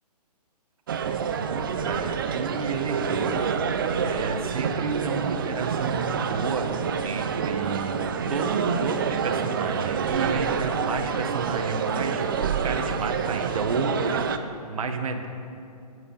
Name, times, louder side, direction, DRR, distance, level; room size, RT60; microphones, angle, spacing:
sound 1, 0.9-14.4, right 6 dB, 35° right, 0.4 m, -28 dB
voice 1, 1.4-3.6 4.0-6.7 7.0-8.0 8.3-12.3 12.6-15.3, right 4 dB, 55° right, 5 dB, 1.3 m, -30 dB
17.5 x 7.7 x 3.9 m, 2.5 s
hypercardioid pair, 160°, 21 cm